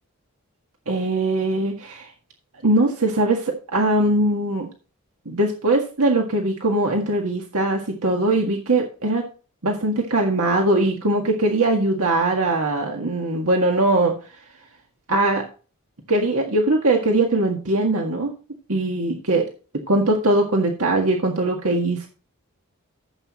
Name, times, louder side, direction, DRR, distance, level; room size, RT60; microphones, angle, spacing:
voice 1, 0.9-2.1 2.6-4.7 5.3-9.2 9.6-14.1 15.1-15.4 16.1-18.3 18.7-19.5 19.9-22.1, right 2 dB, 75° right, 1 dB, 1.8 m, -21 dB
14.0 x 8.0 x 3.0 m, 0.36 s
head